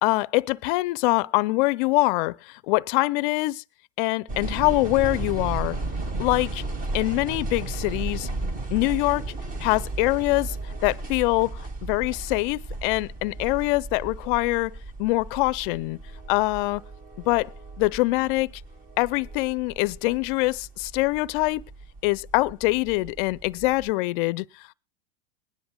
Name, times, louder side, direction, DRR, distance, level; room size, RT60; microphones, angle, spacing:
voice 1, 0.0-3.6 4.0-5.8 6.2-6.6 6.9-8.3 8.7-9.3 9.6-10.6 10.8-16.0 16.3-16.8 17.3-17.5 17.8-18.5 19.0-21.6 22.0-24.4, left 22 dB, 50° left, 0.5 m, -24 dB
sound 1, 4.3-23.9, right 2 dB, 25° right, 1.3 m, -35 dB
21.0 x 10.0 x 2.2 m
hypercardioid pair, 120°, 34 cm